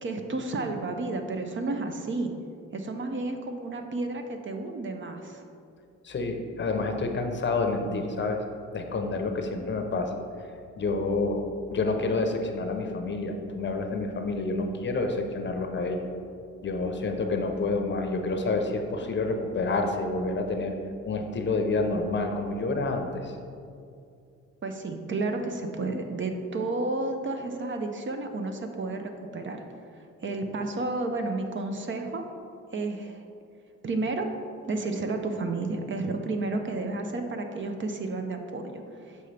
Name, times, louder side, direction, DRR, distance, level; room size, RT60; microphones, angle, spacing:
voice 1, 0.0-2.3 2.7-5.4 24.6-29.6 30.2-32.2 32.7-33.2 33.8-34.3 34.7-39.2, right 2 dB, 40° right, 5 dB, 0.6 m, -31 dB
voice 2, 6.0-8.4 8.7-10.1 10.8-16.1 16.6-20.7 21.0-23.4, left 3 dB, 40° left, 4 dB, 0.7 m, -28 dB
6.7 x 5.3 x 3.3 m, 2.5 s
cardioid pair, 90°, 30 cm